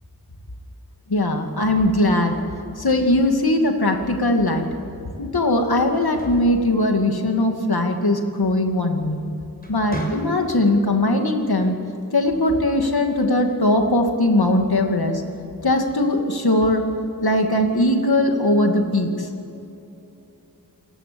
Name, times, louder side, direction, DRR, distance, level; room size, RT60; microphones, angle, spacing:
voice 1, 1.1-2.4 2.8-4.7 5.2-9.2 9.7-11.7 12.1-15.2 15.6-16.8 17.2-19.3, left 1 dB, 90° left, 3 dB, 2.6 m, -20 dB
sound 1, 6.0-7.5 8.9-9.2 9.6-10.7, right 1 dB, 25° left, 6.1 m, -34 dB
28.5 x 19.0 x 7.1 m, 2.8 s
wide cardioid pair, 55°, 36 cm